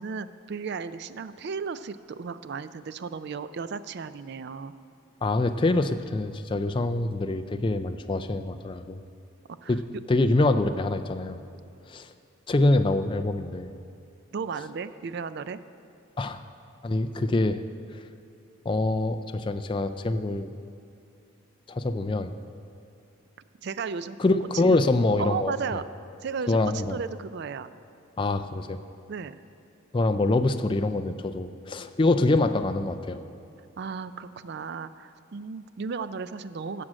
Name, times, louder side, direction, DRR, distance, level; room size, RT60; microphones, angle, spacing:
voice 1, 0.0-4.7 9.6-9.7 14.3-15.6 23.6-24.2 24.5-24.9 25.2-25.9 26.2-27.7 29.1-29.4 33.8-36.8, right 5 dB, 50° right, 14 dB, 0.4 m, -34 dB
voice 2, 5.2-9.0 9.7-9.8 10.1-11.4 11.9-12.1 12.5-13.7 16.2-16.4 16.8-17.6 17.9-18.0 18.7-20.5 21.7-22.3 24.2-25.5 26.5-27.0 28.2-28.8 29.9-33.2, left 2 dB, 25° left, 9 dB, 0.3 m, -25 dB
14.0 x 7.6 x 6.2 m, 2.5 s
head